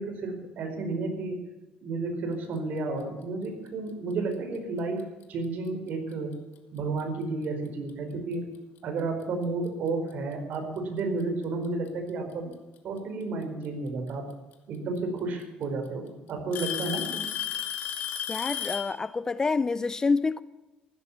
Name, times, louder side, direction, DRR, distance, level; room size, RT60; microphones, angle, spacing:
voice 1, 0.0-1.4 1.8-5.0 5.3-6.4 6.7-8.5 8.8-12.5 12.8-14.3 14.7-17.3, right 3 dB, 55° right, 4.7 m, -32 dB
Alarm / Tick-tock, 5.0-5.2 6.1-6.2 7.0-7.1 8.8-8.9 10.1-10.2 11.4-11.9 13.6-13.7 15.0-15.1 15.4-15.9 16.5-19.0, left 10 dB, 70° left, 2.4 m, -33 dB
voice 2, 18.3-20.4, left 4 dB, 20° left, 0.5 m, -27 dB
15.5 x 13.0 x 7.3 m
cardioid pair, 150°, 3 cm